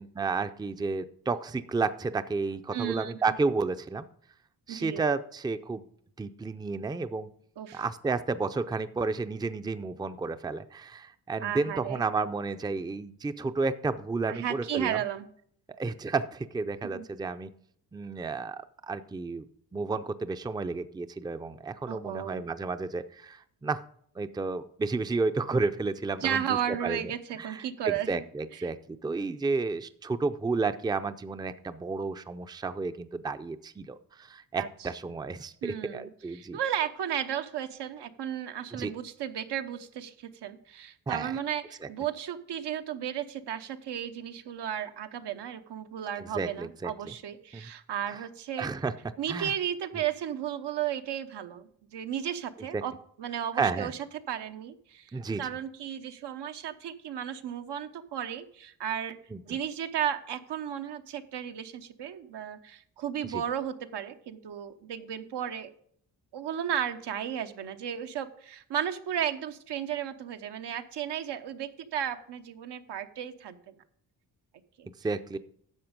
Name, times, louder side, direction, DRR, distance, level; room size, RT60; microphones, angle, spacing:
voice 1, 0.0-4.1 4.7-5.9 6.2-7.3 7.7-15.0 15.8-17.5 17.9-19.5 19.7-23.8 24.2-27.1 27.4-36.6 38.7-38.9 41.1-41.4 46.2-46.9 47.5-47.6 48.1-48.2 48.6-48.9 49.3-49.5 52.7-52.8 53.5-53.9 55.1-55.4 59.3-59.6 63.2-63.4 75.0-75.4, right 4 dB, 10° right, 11 dB, 0.5 m, -32 dB
voice 2, 2.7-3.4 4.7-5.0 7.6-7.8 11.4-12.0 14.3-15.3 16.8-17.0 21.9-22.4 26.2-28.2 28.5-28.7 34.5-34.7 35.6-48.7 49.2-52.9 53.2-54.0 54.3-59.2 59.5-65.7 66.3-73.6 74.8-74.9, right 9 dB, 80° right, 8 dB, 1.0 m, -34 dB
10.5 x 7.0 x 5.2 m, 0.63 s
cardioid pair, 110°, 41 cm